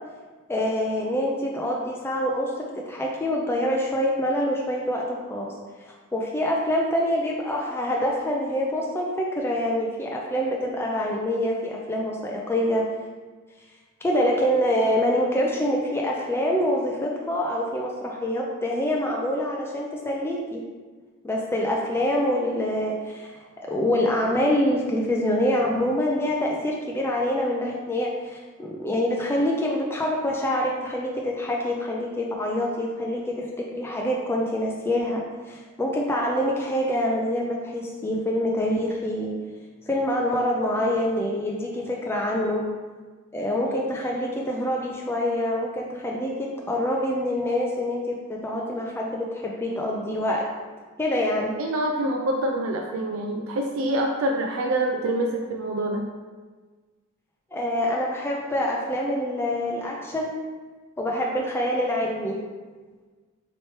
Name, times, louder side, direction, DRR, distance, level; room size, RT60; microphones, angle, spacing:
voice 1, 0.5-12.8 14.0-20.6 21.2-23.3 23.6-39.3 39.9-42.6 43.3-50.4 51.0-51.5 57.5-60.3 61.0-62.4, left 1 dB, 10° left, -2 dB, 0.3 m, -26 dB
voice 2, 51.6-56.1, right 1 dB, 65° right, 1 dB, 0.4 m, -26 dB
3.2 x 2.9 x 4.3 m, 1.4 s
head